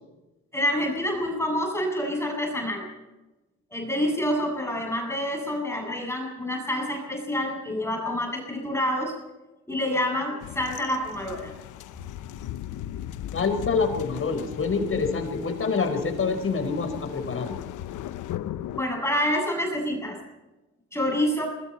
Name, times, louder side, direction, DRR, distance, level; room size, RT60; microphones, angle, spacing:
voice 1, 0.5-2.8 3.7-9.1 9.7-11.5 18.8-20.2 20.9-21.4, equal, 10° left, 0 dB, 7.9 m, -27 dB
sound 1, 10.4-18.8, left 12 dB, 90° left, 1.1 m, -37 dB
voice 2, 13.3-17.6, left 4 dB, 45° left, 6 dB, 4.8 m, -26 dB
27.5 x 22.0 x 4.4 m, 1.1 s
cardioid pair, 90°, 30 cm